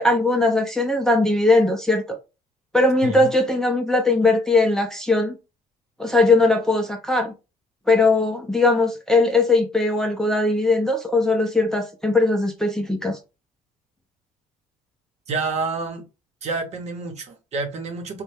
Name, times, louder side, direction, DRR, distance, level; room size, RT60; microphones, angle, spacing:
voice 1, 0.0-2.0 2.7-5.4 6.0-7.3 7.9-13.2, left 2 dB, 5° left, 0.5 m, -19 dB
voice 2, 15.3-16.0 16.4-18.2, right 3 dB, 50° right, 0.9 m, -28 dB
3.1 x 2.2 x 3.3 m
cardioid pair, 110°, 15 cm